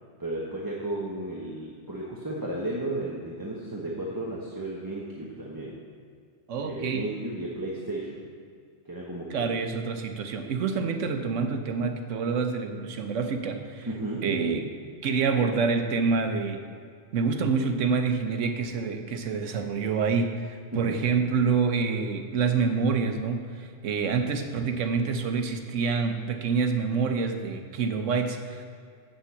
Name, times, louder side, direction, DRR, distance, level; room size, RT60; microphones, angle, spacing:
voice 1, 0.2-5.7 6.6-8.2 8.8-9.6 13.9-14.2 20.7-21.1, right 1 dB, 20° right, -5 dB, 1.0 m, -34 dB
voice 2, 6.5-7.1 9.3-13.9 14.2-14.7 15.0-16.6 17.1-28.7, right 5 dB, 85° right, 6 dB, 1.2 m, -27 dB
7.8 x 7.1 x 7.0 m, 2.2 s
omnidirectional pair, 1.2 m